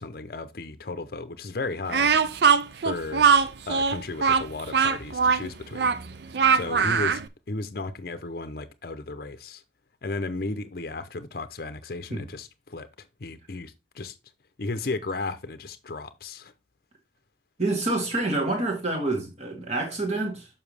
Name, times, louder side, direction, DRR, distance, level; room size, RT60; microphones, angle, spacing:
voice 1, 0.0-2.1 2.8-3.3 3.7-5.9 6.5-9.6 10.0-14.2 14.6-16.5, left 3 dB, 55° left, 0.6 m, -34 dB
Speech, 1.9-7.3, right 6 dB, 65° right, 0.5 m, -21 dB
voice 2, 17.6-20.5, right 2 dB, 35° right, 2.0 m, -27 dB
7.1 x 5.7 x 3.3 m
head